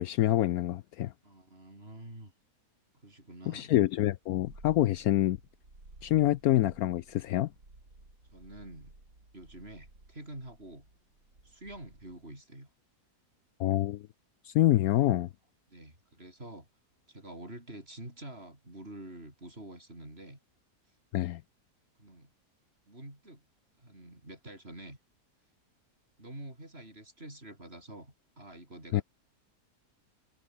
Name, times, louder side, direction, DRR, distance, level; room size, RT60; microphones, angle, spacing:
voice 1, 0.0-1.1 3.5-5.4 6.0-7.5 13.6-14.1 14.4-15.3 21.1-21.4 28.9-29.0, left 14 dB, 70° left, 1.0 m, -26 dB
voice 2, 1.2-2.3 3.0-3.7 8.3-9.0 9.3-10.9 11.4-12.7 15.7-16.7 17.1-20.4 22.0-22.3 22.9-23.4 23.8-25.0 26.2-29.0, right 1 dB, 35° right, 8.5 m, -47 dB
Purr, 4.2-12.3, right 2 dB, 80° right, 7.1 m, -56 dB
omnidirectional pair, 1.7 m